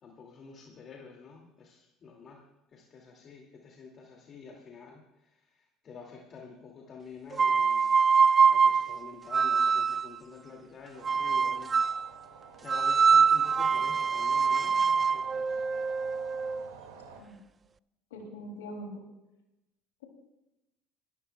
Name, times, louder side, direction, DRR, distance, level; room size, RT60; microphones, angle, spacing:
voice 1, 0.0-2.4 2.7-7.9 8.5-11.9 12.6-15.6, left 5 dB, 45° left, -1 dB, 2.4 m, -49 dB
sound 1, 7.3-10.2 11.0-12.1 12.7-16.7, right 5 dB, 30° right, 0.3 m, -24 dB
sound 2, 10.9-17.2, right 6 dB, 80° right, 2.2 m, -51 dB
voice 2, 18.1-19.0, equal, 85° left, 1 dB, 2.9 m, -42 dB
24.5 x 13.5 x 2.3 m, 0.97 s
hypercardioid pair, 70°, 0 cm